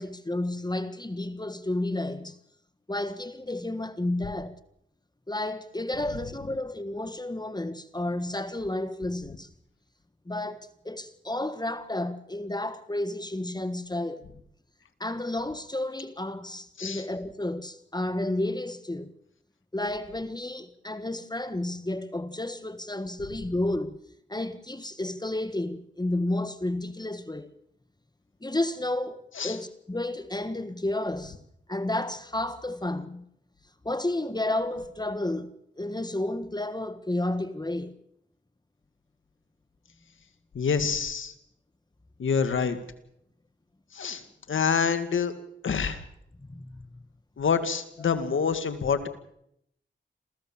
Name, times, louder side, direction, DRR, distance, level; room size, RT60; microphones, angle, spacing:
voice 1, 0.0-2.4 2.9-4.6 5.3-9.5 10.2-14.3 15.0-19.1 19.7-24.0 24.3-27.5 28.4-31.4 31.7-33.2 33.8-38.0 46.4-47.0 48.0-48.1, left 1 dB, 20° left, 1.5 m, -31 dB
voice 2, 40.6-41.3 42.2-42.8 43.9-44.2 44.5-45.3 45.6-46.0 47.4-49.1, left 6 dB, 85° left, 2.0 m, -26 dB
27.5 x 15.5 x 7.3 m
cardioid pair, 45°, 20 cm